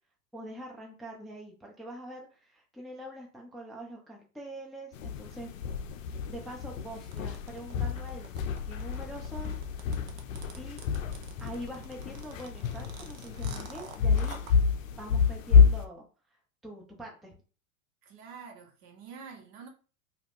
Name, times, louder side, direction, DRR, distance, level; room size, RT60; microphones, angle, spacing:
voice 1, 0.3-5.5 6.3-9.6 10.5-10.8 11.4-14.4 15.0-16.1 16.6-17.4, right 1 dB, ahead, 0.5 m, -44 dB
sound 1, 4.9-15.9, left 6 dB, 70° left, 0.5 m, -28 dB
sound 2, 7.1-14.5, right 7 dB, 75° right, 0.7 m, -48 dB
voice 2, 18.0-19.7, right 6 dB, 50° right, 1.0 m, -47 dB
2.5 x 2.3 x 3.4 m
hypercardioid pair, 90°, 41 cm